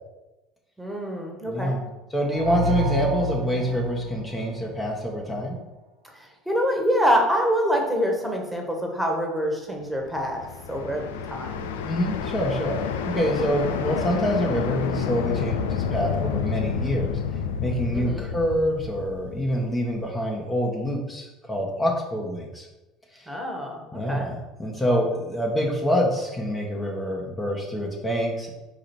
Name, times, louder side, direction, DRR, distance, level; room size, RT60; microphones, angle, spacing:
voice 1, 0.8-1.8 6.4-10.4 10.7-11.7 17.9-18.3 23.3-24.3, equal, 5° right, 1 dB, 1.6 m, -25 dB
voice 2, 1.5-1.8 2.1-5.6 11.8-12.8 13.1-17.2 17.6-22.7 23.1-23.3 23.9-28.5, equal, 20° left, -1 dB, 1.4 m, -26 dB
sound 1, 2.3-5.1, equal, 80° right, 0.9 m, -29 dB
sound 2, 10.0-20.0, left 7 dB, 80° left, 0.5 m, -29 dB
5.1 x 5.0 x 4.6 m, 1.1 s
hypercardioid pair, 70°, 0 cm